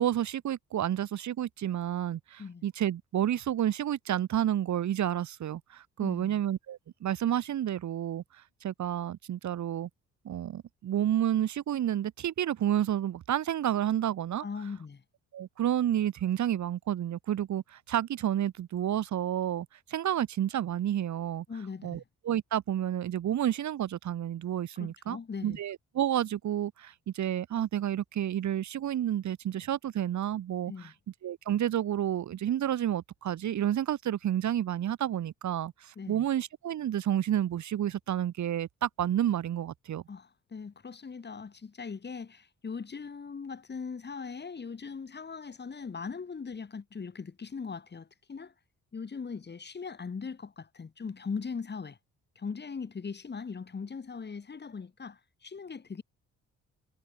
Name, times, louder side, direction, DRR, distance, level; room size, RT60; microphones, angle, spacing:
voice 1, 0.0-8.2 8.6-9.9 10.2-14.4 15.3-21.5 21.8-25.2 25.4-30.7 31.2-40.0, right 11 dB, 70° right, 5.5 m, -30 dB
voice 2, 6.0-6.4 14.4-15.0 21.5-22.0 24.8-25.6 30.7-30.9 36.0-36.3 40.1-48.5 48.9-52.0 52.4-56.0, left 5 dB, 35° left, 4.2 m, -40 dB
cardioid pair, 90°, 30 cm